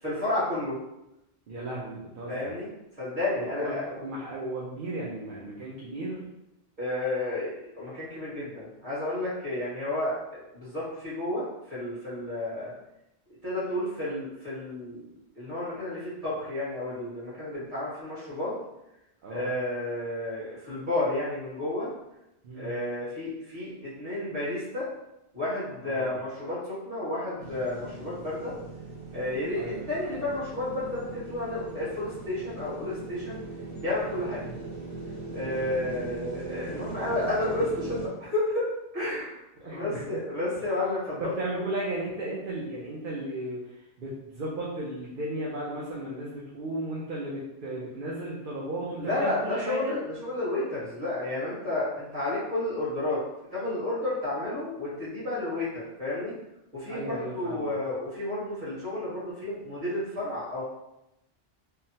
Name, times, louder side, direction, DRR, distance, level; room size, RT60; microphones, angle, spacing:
voice 1, 0.0-0.8 2.3-2.7 3.0-3.8 6.8-10.2 10.5-12.7 13.4-15.1 15.3-18.5 19.3-21.9 22.5-24.9 25.3-28.5 29.1-29.6 29.9-33.4 33.8-34.4 35.3-38.6 38.9-41.7 49.0-53.2 53.5-56.3 56.7-60.6, left 2 dB, 35° right, -10 dB, 1.7 m, -31 dB
voice 2, 1.5-2.5 3.4-6.3 19.2-19.5 22.4-22.7 25.8-26.2 29.5-30.3 34.4-34.6 35.4-36.0 39.6-40.0 41.2-50.0 56.9-57.7, right 1 dB, 60° right, -5 dB, 0.7 m, -35 dB
sound 1, 27.4-38.1, right 2 dB, 80° right, 1.0 m, -40 dB
3.6 x 2.0 x 2.7 m, 0.89 s
omnidirectional pair, 1.1 m